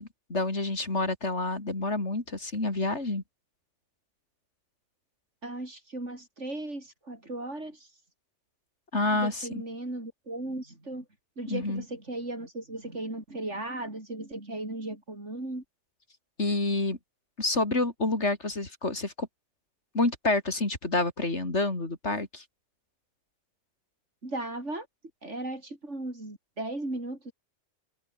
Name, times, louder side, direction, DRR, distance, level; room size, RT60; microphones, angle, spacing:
voice 1, 0.0-3.2 8.9-9.5 11.5-11.8 16.4-17.0 17.4-19.3 19.9-22.4, left 2 dB, 70° left, 4.5 m, -28 dB
voice 2, 5.4-7.9 9.1-11.1 11.4-15.6 24.2-24.9 25.2-27.3, right 2 dB, 75° right, 6.1 m, -36 dB
omnidirectional pair, 1.2 m